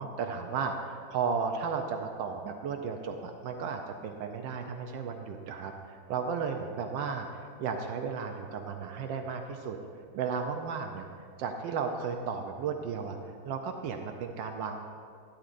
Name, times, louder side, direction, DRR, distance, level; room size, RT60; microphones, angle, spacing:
voice 1, 0.0-9.8 10.1-11.0 11.4-13.2 13.4-14.8, right 5 dB, 80° right, 4 dB, 1.3 m, -34 dB
11.5 x 11.0 x 2.5 m, 2.3 s
omnidirectional pair, 2.0 m